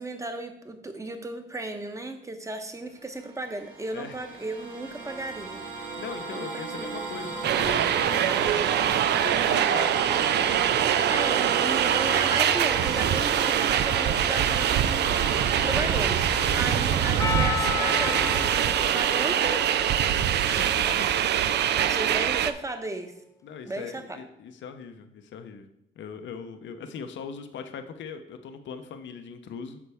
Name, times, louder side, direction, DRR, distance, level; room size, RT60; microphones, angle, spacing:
voice 1, 0.0-5.6 6.3-6.5 6.8-6.9 11.1-19.6 20.5-21.1 21.8-23.1 23.6-24.2, right 2 dB, 15° right, 6 dB, 1.0 m, -35 dB
sound 1, 3.1-18.4, right 3 dB, 90° right, 3.3 m, -34 dB
voice 2, 6.0-10.5 16.4-17.2 20.2-20.5 20.8-21.1 21.7-21.9 23.4-25.7 26.0-29.8, left 6 dB, 70° left, 8 dB, 0.8 m, -40 dB
sound 2, 7.4-22.5, right 10 dB, 60° right, 0.4 m, -24 dB
Percussion, 17.2-21.7, left 6 dB, 15° left, 0.4 m, -34 dB
8.6 x 6.0 x 3.5 m, 0.80 s
cardioid pair, 90°, 20 cm